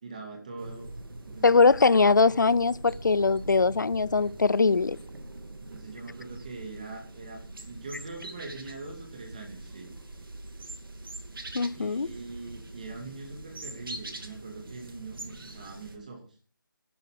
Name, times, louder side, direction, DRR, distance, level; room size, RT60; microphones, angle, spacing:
voice 1, 0.0-0.9 1.2-1.6 5.6-9.9 11.7-16.3, right 3 dB, 20° right, 2.6 m, -42 dB
sound 1, 0.6-16.0, right 2 dB, 85° right, 2.8 m, -43 dB
voice 2, 1.4-5.0 11.5-12.1, left 4 dB, 60° left, 0.6 m, -21 dB
12.0 x 9.7 x 6.5 m
figure-of-eight pair, 180°, 11 cm